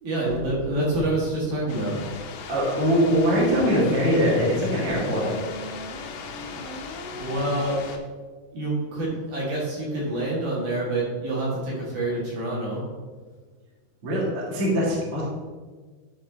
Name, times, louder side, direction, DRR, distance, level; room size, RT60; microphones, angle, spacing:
voice 1, 0.0-2.0 7.2-7.8 8.5-12.8, right 1 dB, 60° right, -5 dB, 3.1 m, -27 dB
sound 1, 1.7-8.0, left 3 dB, 75° left, 2.0 m, -37 dB
voice 2, 2.5-5.4 14.0-15.2, equal, 45° right, -5 dB, 2.4 m, -22 dB
11.0 x 4.3 x 3.9 m, 1.4 s
omnidirectional pair, 4.5 m